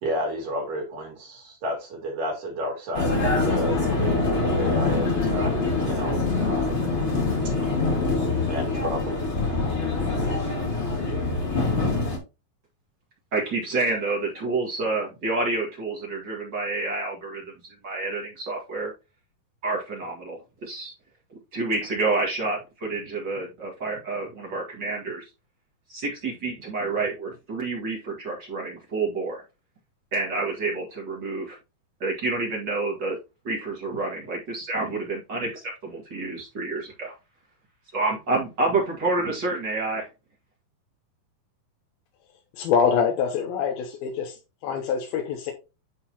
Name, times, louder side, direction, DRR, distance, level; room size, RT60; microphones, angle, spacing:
voice 1, 0.0-5.6 5.8-6.9 7.4-7.9 8.4-9.3, equal, 65° right, 4.0 m, -32 dB
Vehicle, 2.9-12.2, left 3 dB, 25° left, 1.8 m, -24 dB
voice 2, 13.3-17.5 17.8-18.9 19.6-20.9 21.5-25.2 25.9-29.4 30.1-31.6 32.0-33.2 33.4-37.1 37.9-40.1, right 3 dB, 40° right, 1.9 m, -28 dB
voice 3, 42.6-44.4 44.6-45.5, left 7 dB, 85° left, 2.8 m, -24 dB
11.0 x 3.9 x 2.9 m
omnidirectional pair, 4.2 m